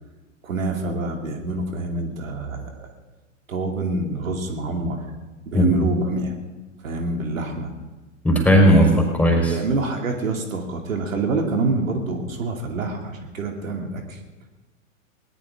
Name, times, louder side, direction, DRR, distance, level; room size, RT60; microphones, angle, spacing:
voice 1, 0.4-2.9 3.5-5.1 5.5-6.3 6.8-7.7 8.6-8.9 9.5-14.2, right 3 dB, 75° right, 3 dB, 2.7 m, -27 dB
voice 2, 5.5-5.9 8.2-9.5, equal, 5° left, 1 dB, 4.5 m, -16 dB
20.0 x 18.5 x 3.7 m, 1.2 s
hypercardioid pair, 105°, 40 cm